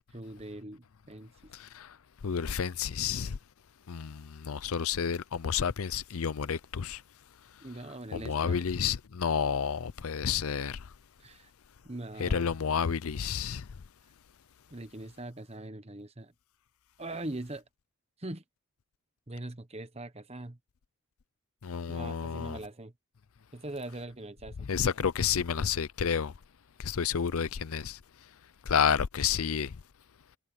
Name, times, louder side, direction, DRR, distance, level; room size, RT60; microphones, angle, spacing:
voice 1, 0.1-1.3 7.6-8.6 11.2-11.5 11.8-12.4 14.7-16.3 17.0-17.6 18.2-18.4 19.3-20.6 21.9-22.9 23.5-24.7, right 2 dB, 30° right, 1.2 m, -41 dB
voice 2, 1.5-1.9 2.2-3.4 3.9-7.0 8.1-10.8 12.2-13.6 21.6-22.6 24.6-26.3 26.8-28.0 28.7-29.7, left 7 dB, 70° left, 0.5 m, -30 dB
head